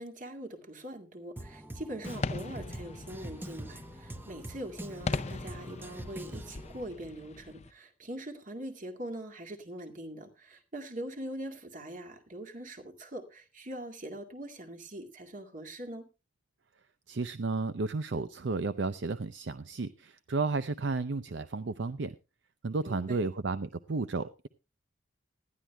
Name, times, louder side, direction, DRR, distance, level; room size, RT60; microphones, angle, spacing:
voice 1, 0.0-16.1 22.8-23.2, right 1 dB, 40° right, 4 dB, 2.1 m, -42 dB
Drum kit, 1.4-6.8, right 1 dB, 10° right, 0.8 m, -44 dB
sound 1, 2.0-7.7, left 3 dB, 35° left, 0.6 m, -40 dB
voice 2, 17.1-22.2 22.6-24.5, right 3 dB, 65° right, 13 dB, 0.6 m, -33 dB
19.5 x 13.0 x 2.2 m, 0.29 s
head